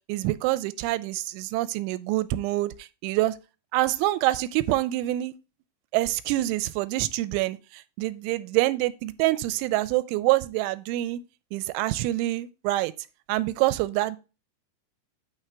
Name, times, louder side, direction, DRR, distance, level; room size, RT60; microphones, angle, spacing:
voice 1, 0.1-3.4 3.7-5.3 5.9-11.2 11.5-12.9 13.3-14.2, right 16 dB, 85° right, 2.9 m, -26 dB
8.9 x 3.3 x 5.9 m
omnidirectional pair, 5.3 m